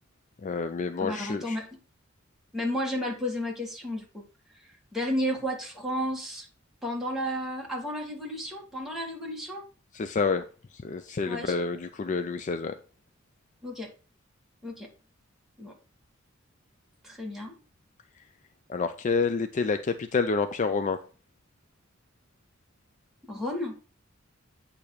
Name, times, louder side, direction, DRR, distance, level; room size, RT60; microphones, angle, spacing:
voice 1, 0.4-1.6 9.9-10.4 10.7-12.7 18.7-21.0, left 4 dB, 35° left, 0.4 m, -28 dB
voice 2, 1.0-1.6 2.5-4.2 4.9-6.5 6.8-9.6 11.2-11.6 13.6-13.9 14.6-14.9 15.6-15.7 17.0-17.5 23.2-23.7, equal, ahead, 1.8 m, -32 dB
8.5 x 2.9 x 6.4 m
head